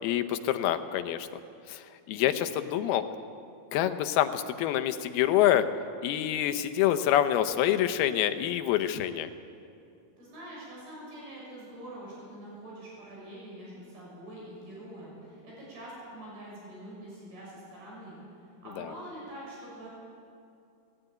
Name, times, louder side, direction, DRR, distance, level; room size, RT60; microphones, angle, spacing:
voice 1, 0.0-1.3 1.7-3.0 3.7-5.7 6.0-9.3 18.8-18.9, left 11 dB, 85° left, 9 dB, 2.8 m, -26 dB
voice 2, 10.2-19.9, right 1 dB, 80° right, -5 dB, 8.3 m, -45 dB
20.0 x 17.5 x 9.2 m, 2.5 s
omnidirectional pair, 4.4 m